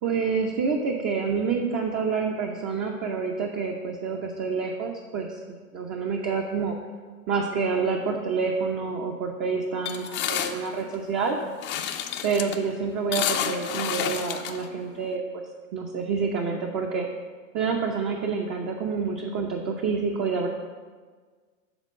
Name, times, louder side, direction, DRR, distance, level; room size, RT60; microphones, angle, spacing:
voice 1, 0.0-6.7 7.3-11.4 12.2-15.4 15.7-17.1 17.5-20.5, right 5 dB, 35° right, 1 dB, 0.8 m, -28 dB
sound 1, 9.9-15.2, left 10 dB, 30° left, 0.5 m, -30 dB
8.1 x 3.7 x 6.3 m, 1.5 s
hypercardioid pair, 110°, 42 cm